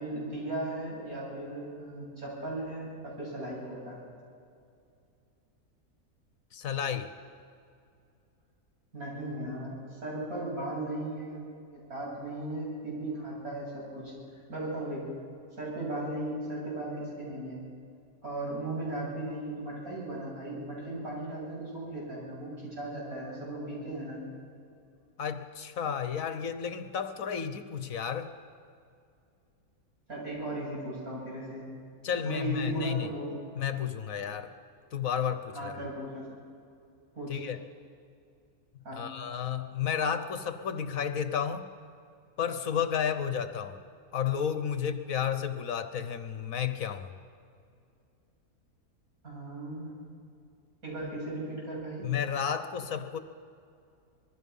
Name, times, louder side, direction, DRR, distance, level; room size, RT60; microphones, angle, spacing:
voice 1, 0.0-4.0 8.9-14.1 14.5-15.1 15.6-17.6 18.2-24.2 30.1-31.7 32.2-33.4 35.5-36.4 37.1-37.4 38.8-39.1 49.2-49.9 50.8-52.1, right 1 dB, 70° right, -5 dB, 8.5 m, -37 dB
voice 2, 6.5-7.1 25.2-28.3 32.0-33.1 33.6-34.5 34.9-35.8 37.3-37.6 38.9-41.7 42.4-43.8 44.1-47.1 52.0-53.2, left 8 dB, 65° left, 10 dB, 1.3 m, -32 dB
26.0 x 21.0 x 5.5 m, 2.4 s
omnidirectional pair, 1.6 m